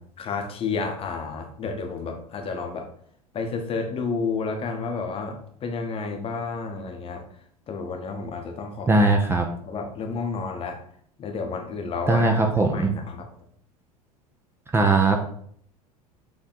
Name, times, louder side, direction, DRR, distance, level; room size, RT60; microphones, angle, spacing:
voice 1, 0.2-2.9 3.3-7.3 7.7-8.9 9.6-10.8 11.2-12.4 12.6-13.3, left 4 dB, 30° left, 4 dB, 1.1 m, -31 dB
voice 2, 8.9-9.4 12.1-12.9 14.7-15.2, right 2 dB, 10° right, 3 dB, 0.7 m, -19 dB
7.0 x 3.4 x 4.0 m, 0.63 s
figure-of-eight pair, 75°, 20 cm